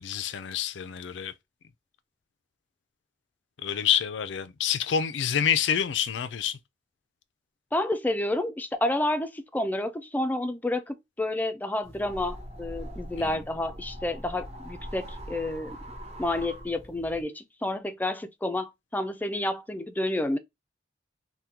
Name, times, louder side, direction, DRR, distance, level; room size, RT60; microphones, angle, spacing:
voice 1, 0.0-1.3 3.6-6.6 13.2-13.4, left 8 dB, 85° left, 0.4 m, -27 dB
voice 2, 7.7-15.8 16.2-20.4, left 1 dB, 10° left, 0.4 m, -30 dB
sound 1, 11.8-17.2, equal, 35° right, 0.7 m, -42 dB
3.5 x 2.2 x 2.8 m
head